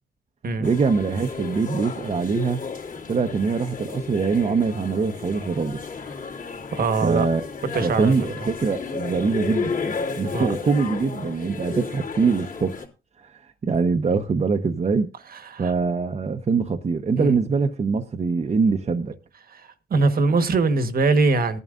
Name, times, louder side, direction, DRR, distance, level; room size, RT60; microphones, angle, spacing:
sound 1, 0.6-12.8, left 5 dB, 40° left, 3.1 m, -33 dB
voice 1, 0.6-2.6 3.1-5.8 7.0-7.5 7.8-12.8 13.2-15.1 15.6-19.2, right 5 dB, 35° right, 1.0 m, -23 dB
voice 2, 6.7-7.3 7.7-8.1 10.3-10.6 15.3-15.7 17.2-17.4 19.5-21.6, right 3 dB, 50° right, 1.4 m, -22 dB
18.5 x 11.0 x 2.6 m
cardioid pair, 90°, 20 cm